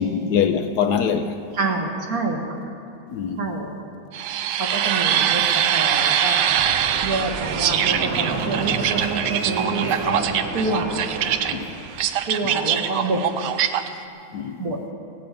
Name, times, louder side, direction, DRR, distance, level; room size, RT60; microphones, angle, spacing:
voice 1, 0.0-1.3 3.1-3.6 5.4-5.6 9.8-10.1 11.5-11.7 12.4-12.5 14.3-14.8, left 7 dB, 65° left, 1.1 m, -24 dB
voice 2, 1.6-2.4 3.4-3.7 4.6-6.5 7.0-10.3 10.5-10.9 12.3-13.3 14.6-14.8, right 3 dB, 50° right, 1.9 m, -27 dB
sound 1, 4.1-13.9, right 9 dB, 70° right, 1.2 m, -23 dB
Fixed-wing aircraft airplane, 6.5-12.1, right 3 dB, 90° right, 2.2 m, -31 dB
17.5 x 8.6 x 8.3 m
omnidirectional pair, 2.1 m